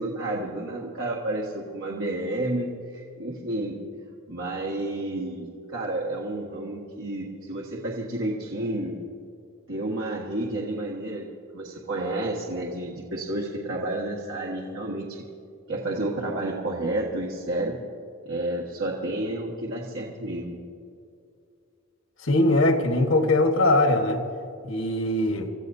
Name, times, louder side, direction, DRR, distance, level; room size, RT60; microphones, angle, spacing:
voice 1, 0.0-3.8 4.3-9.0 9.7-11.3 11.5-15.2 15.7-17.8 18.2-20.6, right 1 dB, 65° right, -2 dB, 1.7 m, -30 dB
voice 2, 22.2-24.2 24.6-25.5, left 1 dB, 60° left, 4 dB, 1.5 m, -21 dB
28.0 x 14.5 x 2.8 m, 2.5 s
head